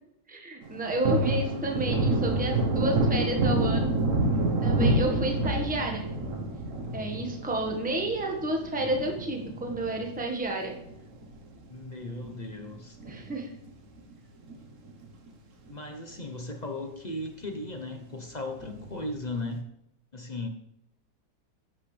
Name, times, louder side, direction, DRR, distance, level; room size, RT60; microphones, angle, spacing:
voice 1, 0.3-4.0 4.6-6.1 6.9-10.7 13.1-13.5, right 1 dB, 5° right, 1 dB, 1.3 m, -31 dB
Thunder, 0.6-11.4 11.7-11.8 12.2-13.7 14.0-14.1 14.5-15.3 15.7-15.8 16.1-16.2 18.6-19.1, right 2 dB, 50° right, 1.3 m, -28 dB
voice 2, 11.7-13.0 15.7-19.7 20.1-20.5, left 2 dB, 35° left, 4 dB, 0.7 m, -36 dB
11.5 x 9.0 x 3.3 m, 0.81 s
omnidirectional pair, 1.9 m